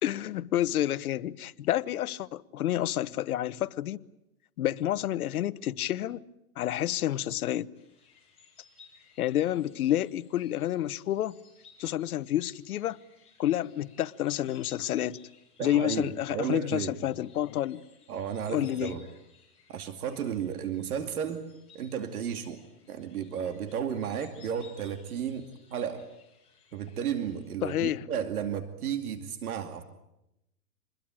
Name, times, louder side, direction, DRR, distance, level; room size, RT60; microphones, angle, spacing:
voice 1, 0.0-4.0 4.6-6.2 6.6-7.7 9.2-11.4 11.8-13.0 13.4-15.2 15.6-17.8 18.5-19.0 27.6-28.1, left 12 dB, 70° left, 1.1 m, -29 dB
sound 1, 7.7-27.5, left 5 dB, 15° left, 6.5 m, -60 dB
voice 2, 15.6-17.0 18.1-19.1 19.7-21.4 21.7-22.6 22.9-26.1 26.7-29.8, right 8 dB, 70° right, 2.5 m, -33 dB
27.0 x 21.5 x 9.0 m
hypercardioid pair, 160°, 45 cm